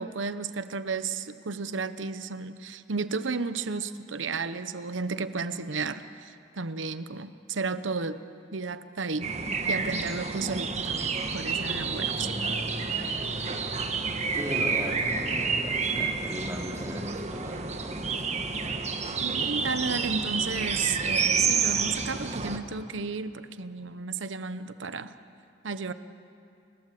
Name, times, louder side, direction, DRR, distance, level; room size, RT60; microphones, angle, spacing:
voice 1, 0.0-8.2 8.5-9.3 9.7-12.5 19.2-25.1 25.6-25.9, right 4 dB, 75° right, 12 dB, 0.9 m, -33 dB
sound 1, 9.2-22.6, right 5 dB, 35° right, 1.4 m, -29 dB
voice 2, 14.3-18.5, equal, 15° right, -2 dB, 3.6 m, -38 dB
29.5 x 20.0 x 7.7 m, 2.5 s
head